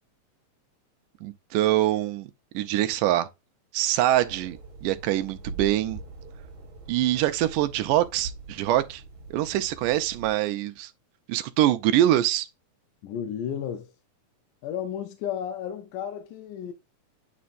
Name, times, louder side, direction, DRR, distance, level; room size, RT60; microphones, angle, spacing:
voice 1, 1.2-2.3 2.5-3.3 3.7-6.0 6.9-9.0 9.3-10.9 11.3-12.5, right 13 dB, 80° right, 2.1 m, -24 dB
sound 1, 4.1-10.3, right 3 dB, 45° right, 1.8 m, -42 dB
voice 2, 13.0-13.9 14.6-16.7, left 9 dB, 75° left, 2.1 m, -33 dB
9.3 x 4.2 x 2.5 m
omnidirectional pair, 3.9 m